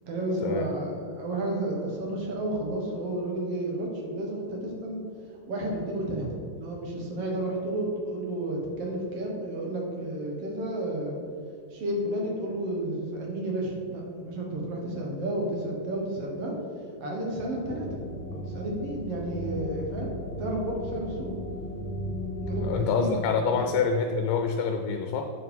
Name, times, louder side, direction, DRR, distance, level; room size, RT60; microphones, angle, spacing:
voice 1, 0.0-5.0 5.5-6.3 6.5-11.2 11.7-16.5 17.0-18.0 18.3-21.3 22.4-23.7, right 1 dB, 60° right, -1 dB, 1.7 m, -32 dB
sound 1, 17.6-22.7, equal, 40° left, 2.2 m, -35 dB
voice 2, 22.6-25.2, left 5 dB, 85° left, 4 dB, 2.3 m, -26 dB
8.9 x 4.7 x 5.3 m, 2.3 s
omnidirectional pair, 4.0 m